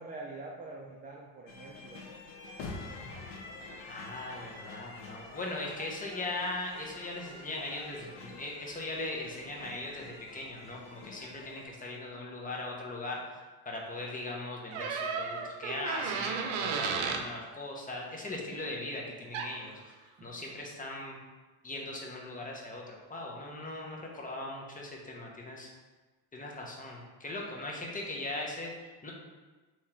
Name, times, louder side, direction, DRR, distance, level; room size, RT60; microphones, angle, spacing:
voice 1, 0.0-2.0 20.2-20.3, right 2 dB, 20° right, -2 dB, 0.3 m, -45 dB
sound 1, 1.5-11.7, left 3 dB, 65° left, 1.0 m, -47 dB
voice 2, 3.9-13.2 13.6-21.2 21.6-25.7 26.3-29.1, left 2 dB, 20° left, -2 dB, 0.8 m, -39 dB
sound 2, 14.7-17.3 19.3-19.5, right 5 dB, 85° right, 0.7 m, -33 dB
3.7 x 3.0 x 4.3 m, 1.3 s
cardioid pair, 125°, 46 cm